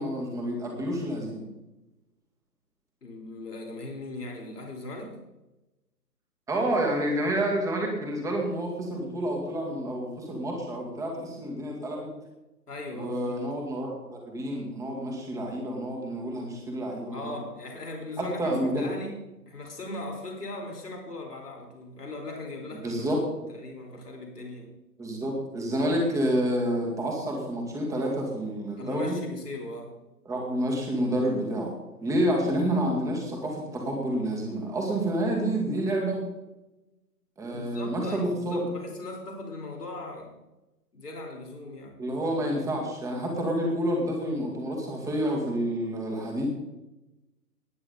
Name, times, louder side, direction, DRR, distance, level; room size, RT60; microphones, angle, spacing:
voice 1, 0.0-1.5 6.5-12.1 12.9-17.4 18.2-18.9 22.8-23.2 25.0-29.2 30.3-31.7 32.0-36.2 37.4-38.7 42.0-46.5, right 1 dB, 5° right, 0 dB, 2.2 m, -29 dB
voice 2, 3.0-5.2 12.7-13.4 17.1-23.1 23.4-24.7 28.8-30.0 37.5-40.3 40.9-41.9, left 2 dB, 70° left, 0 dB, 4.3 m, -39 dB
19.5 x 9.5 x 4.1 m, 1.0 s
figure-of-eight pair, 140°, 48 cm